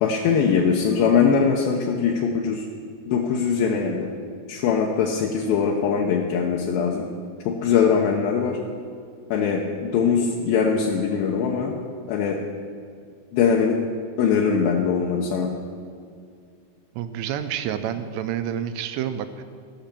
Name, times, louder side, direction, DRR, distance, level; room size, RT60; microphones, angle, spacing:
voice 1, 0.0-2.7 3.1-4.1 4.5-7.1 7.5-8.6 9.3-11.8 12.1-12.4 13.3-13.8 14.2-15.5, left 6 dB, 80° left, 0 dB, 2.3 m, -21 dB
voice 2, 16.9-19.4, right 9 dB, 85° right, 10 dB, 2.9 m, -29 dB
16.0 x 5.7 x 6.8 m, 2.2 s
omnidirectional pair, 4.9 m